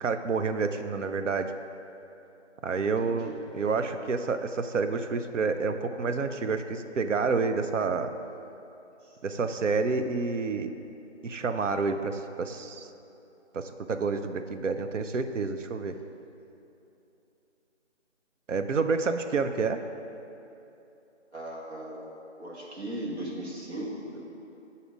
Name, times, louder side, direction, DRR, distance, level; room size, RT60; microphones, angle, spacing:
voice 1, 0.0-1.5 2.6-8.1 9.2-10.7 11.2-12.9 13.5-15.9 18.5-19.8, right 4 dB, 80° right, 8 dB, 0.6 m, -29 dB
voice 2, 3.0-3.4 21.3-22.0 22.4-24.2, right 1 dB, 60° right, -4 dB, 1.6 m, -37 dB
7.0 x 4.2 x 5.2 m, 2.9 s
figure-of-eight pair, 175°, 36 cm